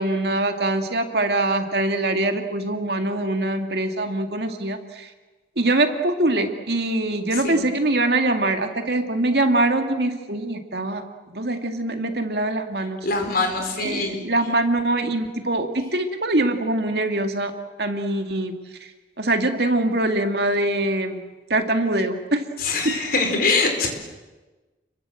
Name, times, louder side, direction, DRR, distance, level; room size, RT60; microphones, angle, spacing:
voice 1, 0.0-5.1 5.6-11.0 11.3-13.0 13.8-17.5 17.8-18.5 19.2-21.2 21.5-22.4 22.8-22.9, right 2 dB, 60° right, 5 dB, 2.3 m, -23 dB
voice 2, 7.3-7.6 13.0-14.2 22.6-23.9, left 3 dB, 50° left, 4 dB, 4.9 m, -23 dB
30.0 x 22.5 x 7.8 m, 1.2 s
head